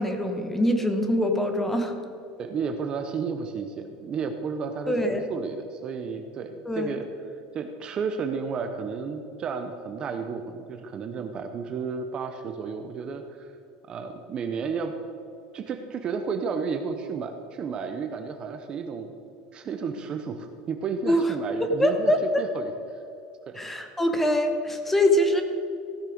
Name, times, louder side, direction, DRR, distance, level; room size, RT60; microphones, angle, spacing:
voice 1, 0.0-1.9 4.9-5.3 6.6-7.0 21.1-21.2 21.6-22.4 23.5-25.4, left 1 dB, 5° left, 5 dB, 1.0 m, -23 dB
voice 2, 2.4-7.1 7.5-13.5 13.9-14.9 15.5-19.1 19.5-22.7 23.5-23.6, right 5 dB, 30° right, 6 dB, 0.7 m, -32 dB
15.5 x 6.6 x 5.0 m, 2.7 s
supercardioid pair, 150°, 3 cm